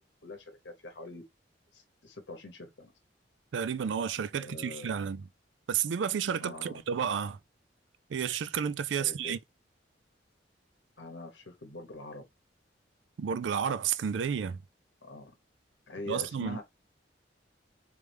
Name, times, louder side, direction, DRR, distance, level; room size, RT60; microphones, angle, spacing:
voice 1, 0.2-1.2 1.7-2.9 4.4-4.9 6.4-6.8 9.0-9.4 11.0-12.2 15.0-15.3 15.9-16.6, left 2 dB, 75° left, 0.9 m, -44 dB
voice 2, 3.5-5.2 5.7-7.4 8.1-9.4 13.2-14.6 16.1-16.6, right 7 dB, 85° right, 0.4 m, -31 dB
3.3 x 3.2 x 3.4 m
head